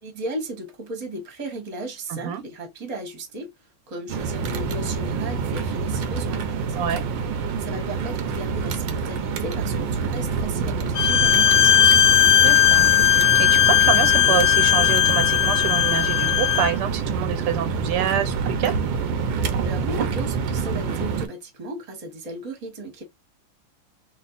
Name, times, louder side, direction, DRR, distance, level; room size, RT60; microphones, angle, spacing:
voice 1, 0.0-3.5 3.9-7.1 7.6-12.1 19.6-23.0, right 1 dB, 25° right, 1.0 m, -35 dB
voice 2, 2.1-2.4 6.8-7.0 12.3-18.8, right 9 dB, 85° right, 1.7 m, -27 dB
sound 1, 4.1-21.3, right 5 dB, 70° right, 1.2 m, -27 dB
Bowed string instrument, 11.0-16.7, left 11 dB, 80° left, 1.4 m, -17 dB
3.4 x 2.4 x 3.9 m
omnidirectional pair, 2.4 m